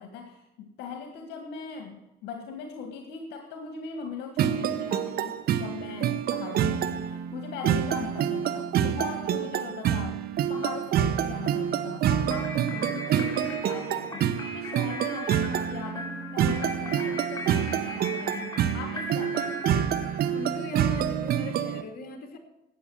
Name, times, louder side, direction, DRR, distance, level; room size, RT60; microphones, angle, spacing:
voice 1, 0.0-19.6, left 6 dB, 85° left, 4 dB, 1.9 m, -40 dB
sound 1, 4.4-21.8, right 9 dB, 65° right, 1.0 m, -27 dB
sound 2, 12.3-20.6, left 2 dB, 20° left, 4.0 m, -39 dB
voice 2, 20.3-22.4, left 3 dB, 60° left, 4 dB, 2.7 m, -39 dB
13.0 x 8.5 x 7.8 m, 0.95 s
cardioid pair, 110°, 17 cm